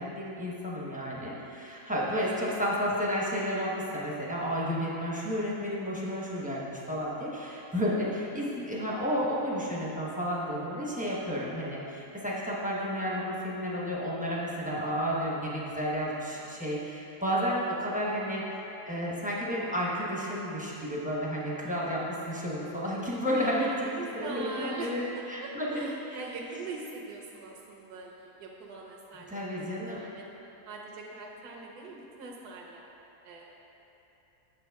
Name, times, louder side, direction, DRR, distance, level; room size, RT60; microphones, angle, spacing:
voice 1, 0.0-25.0 25.3-26.2 29.3-30.1, equal, 5° right, -6 dB, 0.7 m, -32 dB
voice 2, 9.6-9.9 18.0-18.4 23.3-30.2 30.7-32.8 33.2-33.5, right 3 dB, 75° right, -2 dB, 1.2 m, -42 dB
8.2 x 6.6 x 3.5 m, 3.0 s
omnidirectional pair, 1.7 m